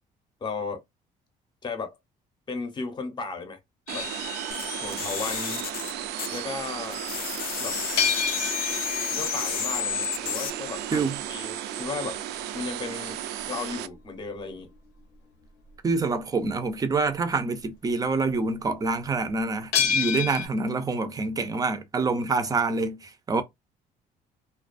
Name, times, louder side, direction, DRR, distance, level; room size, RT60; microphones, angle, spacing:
voice 1, 0.4-0.8 1.6-2.0 2.5-3.6 3.9-4.1 4.8-5.7 6.3-7.0 7.6-7.8 9.1-12.2 12.5-13.2 13.5-14.7, left 4 dB, 25° left, 0.7 m, -35 dB
sound 1, 3.9-6.1 8.0-14.6 19.7-20.5, left 7 dB, 90° left, 0.9 m, -32 dB
sound 2, 3.9-13.9, right 11 dB, 80° right, 0.4 m, -35 dB
sound 3, 4.5-6.7 6.9-10.5, left 10 dB, 60° left, 0.4 m, -32 dB
voice 2, 15.8-23.4, right 3 dB, 20° right, 0.5 m, -26 dB
2.3 x 2.3 x 2.4 m
cardioid pair, 110°, 17 cm